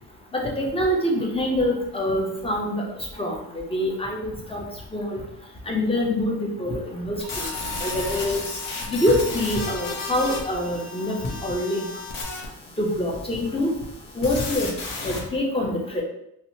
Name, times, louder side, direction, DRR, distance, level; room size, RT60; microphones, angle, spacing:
voice 1, 0.3-2.8 3.2-4.6 4.9-5.2 5.7-7.4 7.8-8.4 8.9-11.9 12.8-13.7 14.2-14.7 15.0-16.0, left 1 dB, 15° left, -1 dB, 0.6 m, -25 dB
sound 1, 7.2-15.2, left 3 dB, 60° left, 0.7 m, -34 dB
sound 2, 7.2-12.2, left 2 dB, 50° right, 0.5 m, -41 dB
2.7 x 2.1 x 2.7 m, 0.78 s
cardioid pair, 90°, 38 cm